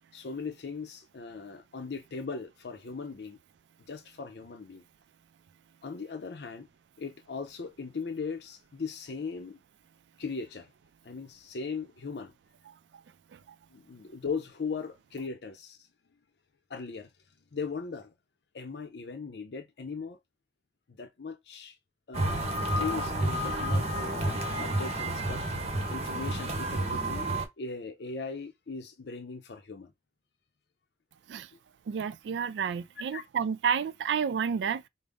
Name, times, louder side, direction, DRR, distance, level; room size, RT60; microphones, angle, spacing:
voice 1, 0.1-3.4 3.9-4.8 5.8-6.7 7.0-9.6 10.2-10.7 11.0-12.3 13.7-15.9 16.7-17.1 17.5-18.1 18.5-20.2 20.9-21.8 22.1-25.5 25.9-27.3 27.6-29.9 31.5-31.6 33.1-33.2, left 4 dB, 70° left, 0.5 m, -38 dB
voice 2, 12.7-13.0 13.3-13.4 31.3-31.5 31.9-34.9, right 7 dB, 85° right, 0.3 m, -31 dB
sound 1, 22.1-27.4, right 1 dB, 35° right, 0.9 m, -30 dB
5.1 x 2.0 x 3.4 m
head